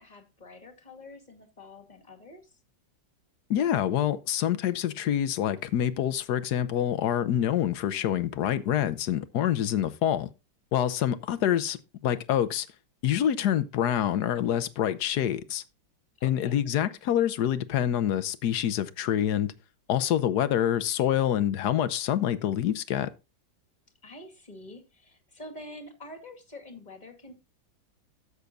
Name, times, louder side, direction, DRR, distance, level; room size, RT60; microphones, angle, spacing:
voice 1, 0.0-2.6 16.2-16.6 24.0-27.3, left 1 dB, 20° left, 2.4 m, -46 dB
voice 2, 3.5-10.3 10.7-12.7 13.0-15.6 16.2-19.5 19.9-23.1, left 10 dB, 65° left, 1.2 m, -26 dB
13.0 x 8.2 x 2.5 m
omnidirectional pair, 2.0 m